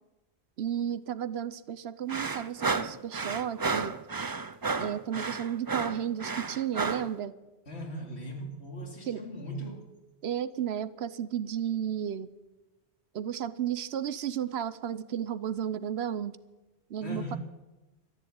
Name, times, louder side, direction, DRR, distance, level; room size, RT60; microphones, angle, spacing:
voice 1, 0.6-4.0 4.8-7.3 9.0-9.2 10.2-12.3 13.1-16.4 16.9-17.4, right 9 dB, 75° right, 16 dB, 1.0 m, -33 dB
sound 1, 2.1-7.1, right 4 dB, 30° right, 0.4 m, -32 dB
voice 2, 7.7-9.9 17.0-17.4, equal, 75° left, 1 dB, 3.2 m, -39 dB
13.5 x 11.0 x 8.8 m, 1.1 s
omnidirectional pair, 1.1 m